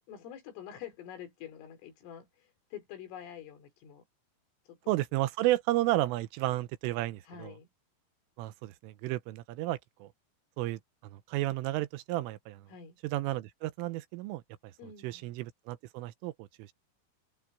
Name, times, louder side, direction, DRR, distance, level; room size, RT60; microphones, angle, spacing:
voice 1, 0.1-4.1 4.7-4.8 7.2-7.7 12.7-13.0 14.8-15.3, left 9 dB, 85° left, 6.0 m, -47 dB
voice 2, 4.9-7.5 8.4-10.1 10.6-12.7 13.0-14.7 15.0-16.7, right 16 dB, 85° right, 3.5 m, -32 dB
omnidirectional pair, 5.6 m